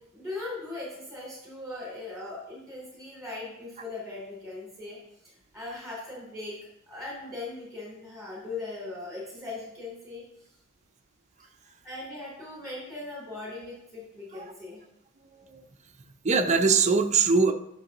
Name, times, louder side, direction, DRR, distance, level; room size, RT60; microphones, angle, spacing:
voice 1, 0.0-5.0 5.5-10.2 11.8-14.8, left 2 dB, ahead, -6 dB, 3.1 m, -39 dB
voice 2, 15.2-15.6 16.2-17.5, right 5 dB, 35° right, 6 dB, 0.6 m, -22 dB
11.5 x 6.0 x 2.9 m, 0.79 s
head